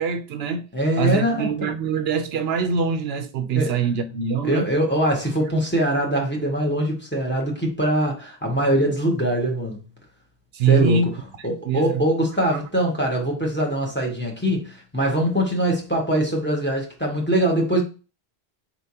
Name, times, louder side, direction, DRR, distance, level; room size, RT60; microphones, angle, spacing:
voice 1, 0.0-0.7 1.0-4.7 10.5-12.0 12.5-12.6, right 5 dB, 75° right, 0.8 m, -24 dB
voice 2, 0.7-1.5 3.5-3.7 4.4-9.8 10.7-11.0 11.5-17.8, right 1 dB, 10° left, 1.3 m, -22 dB
4.5 x 3.4 x 2.8 m
omnidirectional pair, 1.1 m